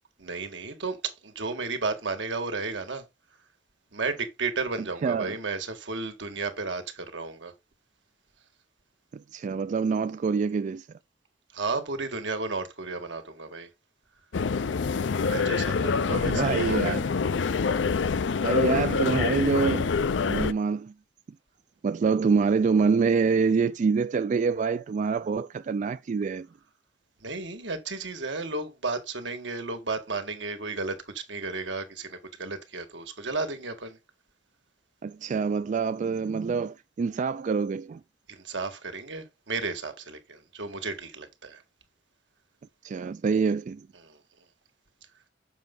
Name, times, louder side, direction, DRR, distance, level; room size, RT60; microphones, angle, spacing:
voice 1, 0.2-3.0 3.9-7.5 11.5-13.7 15.2-17.0 27.2-34.0 38.3-41.6 44.0-44.2, right 3 dB, 80° right, 1.8 m, -33 dB
voice 2, 5.0-5.4 9.1-10.9 16.1-17.1 18.4-19.9 20.2-20.9 21.8-26.5 35.0-38.0 42.8-43.9, right 5 dB, 45° right, 0.3 m, -26 dB
Moscow metro announcements, 14.3-20.5, left 5 dB, 80° left, 0.5 m, -26 dB
7.1 x 5.5 x 3.8 m
head